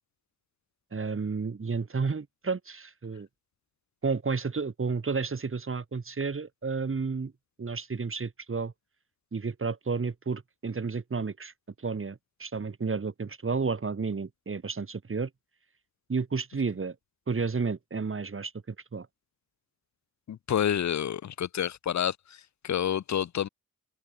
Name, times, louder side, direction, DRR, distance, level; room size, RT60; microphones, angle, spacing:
voice 1, 0.9-3.3 4.0-7.3 7.6-8.7 9.3-15.3 16.1-16.9 17.3-19.1, right 4 dB, 40° right, 1.1 m, -31 dB
voice 2, 20.3-22.2 22.6-23.5, left 9 dB, 60° left, 0.5 m, -28 dB
wide cardioid pair, 70°, 32 cm